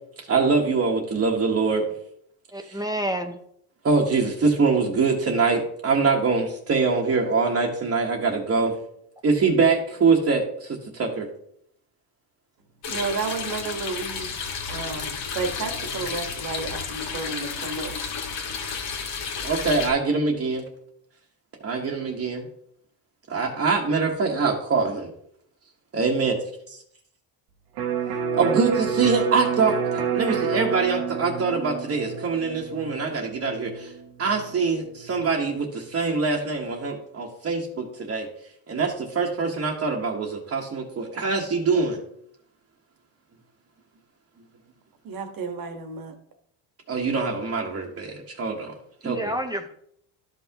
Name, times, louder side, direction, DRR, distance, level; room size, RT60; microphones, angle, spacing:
voice 1, 0.3-1.8 2.6-2.8 3.8-8.7 9.2-11.3 19.4-20.6 21.6-22.5 23.3-25.1 25.9-26.4 26.7-26.8 28.4-33.9 34.2-38.3 38.7-42.0 46.9-48.7 49.0-49.3, right 4 dB, 30° right, -3 dB, 1.2 m, -24 dB
voice 2, 2.5-3.4 49.0-49.7, right 1 dB, 10° right, 4 dB, 0.5 m, -29 dB
sound 1, 12.8-19.9, left 5 dB, 65° left, 1.8 m, -32 dB
voice 3, 12.9-14.3 14.7-17.9 45.0-46.2, right 4 dB, 45° right, 6 dB, 1.4 m, -32 dB
Electric guitar, 27.8-35.4, right 6 dB, 85° right, 1.4 m, -29 dB
12.5 x 5.8 x 2.9 m, 0.70 s
cardioid pair, 125°, 46 cm